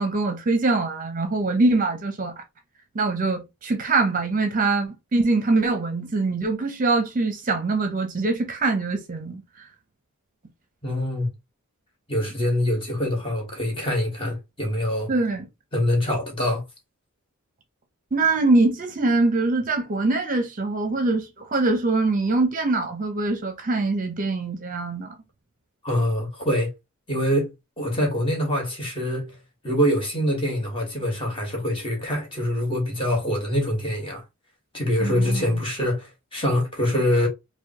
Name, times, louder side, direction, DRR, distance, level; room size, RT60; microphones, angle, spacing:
voice 1, 0.0-2.4 2.9-9.4 15.1-15.5 18.1-25.2 35.0-35.6, right 3 dB, 35° right, 0.7 m, -23 dB
voice 2, 10.8-11.3 12.1-15.1 15.7-16.6 25.8-26.7 27.1-29.3 29.6-34.2 34.7-37.3, left 1 dB, 25° left, 1.3 m, -24 dB
4.8 x 2.2 x 2.9 m
head